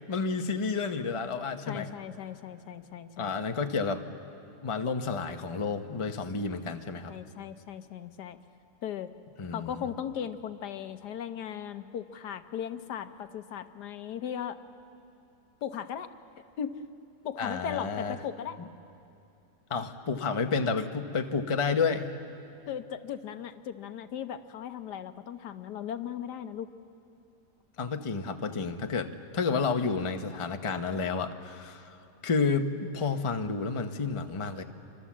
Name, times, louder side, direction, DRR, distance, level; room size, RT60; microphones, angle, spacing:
voice 1, 0.1-1.9 3.2-4.0 4.6-7.1 9.4-9.8 17.4-18.2 19.7-22.1 27.8-31.8 32.2-34.6, left 4 dB, 25° left, 6 dB, 0.8 m, -30 dB
voice 2, 1.7-3.4 7.1-8.4 8.8-9.1 9.5-14.6 15.6-16.1 16.4-16.8 17.2-18.6 22.7-26.7, left 9 dB, 80° left, 10 dB, 1.4 m, -37 dB
28.5 x 25.0 x 7.4 m, 2.7 s
omnidirectional pair, 1.8 m